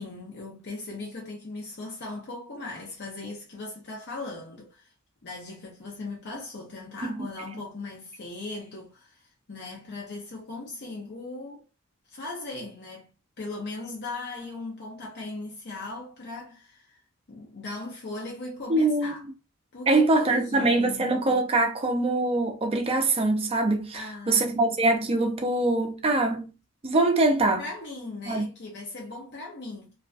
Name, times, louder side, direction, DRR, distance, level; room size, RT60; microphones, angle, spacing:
voice 1, 0.0-4.9 5.2-11.6 12.1-13.1 13.4-17.0 17.3-19.2 19.7-21.2 23.9-24.6 27.6-29.9, left 2 dB, 50° left, 0.7 m, -38 dB
voice 2, 18.7-19.1 19.9-26.5 26.8-27.6 28.3-28.5, right 2 dB, 25° right, 0.5 m, -23 dB
2.3 x 2.2 x 2.4 m
head